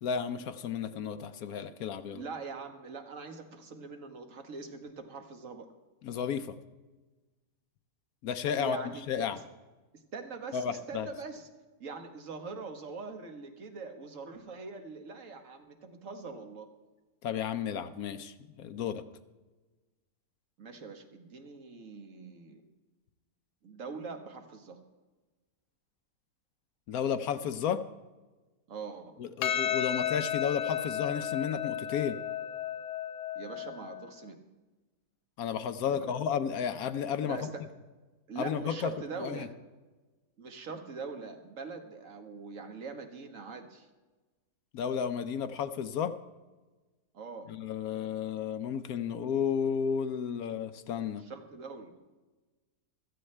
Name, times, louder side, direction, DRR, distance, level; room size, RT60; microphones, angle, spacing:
voice 1, 0.0-2.2 6.0-6.5 8.2-8.8 9.1-9.4 10.5-11.1 17.2-19.0 26.9-27.8 29.2-32.2 35.4-37.4 38.4-38.9 39.2-39.5 44.7-46.1 47.5-51.2, left 7 dB, 70° left, 11 dB, 1.1 m, -32 dB
voice 2, 2.1-5.7 8.5-9.1 10.1-11.5 11.8-16.7 20.6-22.6 23.6-24.8 28.7-29.1 33.4-34.4 35.9-36.1 37.2-37.6 38.3-39.5 40.4-43.9 47.1-47.5 51.2-51.9, right 4 dB, 55° right, 6 dB, 1.6 m, -43 dB
Percussion, 29.4-34.0, left 10 dB, 90° left, 1.2 m, -33 dB
15.5 x 13.5 x 3.3 m, 1.2 s
omnidirectional pair, 1.7 m